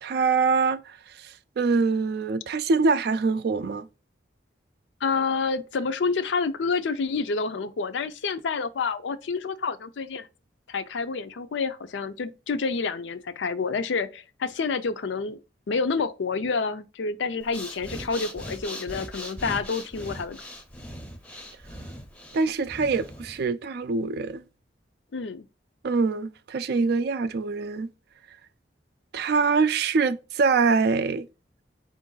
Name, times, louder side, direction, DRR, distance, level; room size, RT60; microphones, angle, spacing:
voice 1, 0.0-0.8 1.6-3.9 22.3-24.4 25.8-27.9 29.1-31.3, right 4 dB, 60° right, 0.3 m, -24 dB
voice 2, 5.0-10.3 10.7-15.4 15.7-20.4 25.1-25.5, left 4 dB, 75° left, 0.5 m, -28 dB
Breathing, 17.4-23.5, equal, 5° left, 0.6 m, -40 dB
4.5 x 2.5 x 3.8 m
head